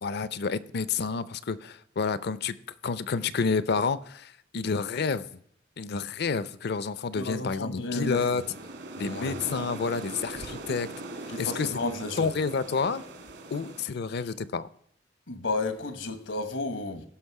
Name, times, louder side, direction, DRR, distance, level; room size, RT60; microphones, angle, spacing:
voice 1, 0.0-2.5 2.8-5.3 5.8-8.4 9.0-10.9 11.4-11.7 12.2-13.0 13.5-14.6, left 5 dB, 60° left, 0.5 m, -29 dB
voice 2, 7.1-8.4 9.0-9.4 11.3-12.3 15.3-17.1, left 2 dB, 85° left, 1.3 m, -32 dB
sound 1, 7.9-13.8, right 2 dB, 65° right, 1.7 m, -41 dB
16.0 x 6.0 x 4.8 m
head